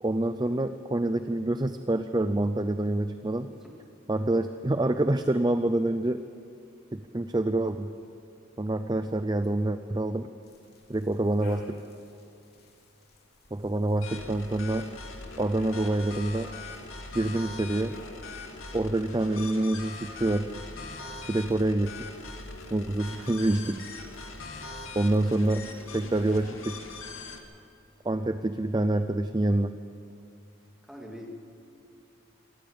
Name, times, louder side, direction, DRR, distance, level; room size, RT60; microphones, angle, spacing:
voice 1, 0.0-3.5 4.1-6.2 6.9-7.9 8.6-10.3 10.9-11.6 13.5-14.9 15.4-16.5 17.1-18.0 18.7-20.5 21.3-21.9 22.7-23.9 24.9-25.7 25.9-26.8 28.0-29.7, right 1 dB, 20° right, 9 dB, 0.5 m, -26 dB
voice 2, 3.5-3.8 30.8-31.3, equal, ahead, -1 dB, 2.7 m, -44 dB
sound 1, 10.4-26.5, left 2 dB, 50° left, 3.2 m, -57 dB
sound 2, 14.0-27.4, left 3 dB, 70° left, 2.3 m, -42 dB
26.5 x 13.5 x 8.8 m, 2.4 s
head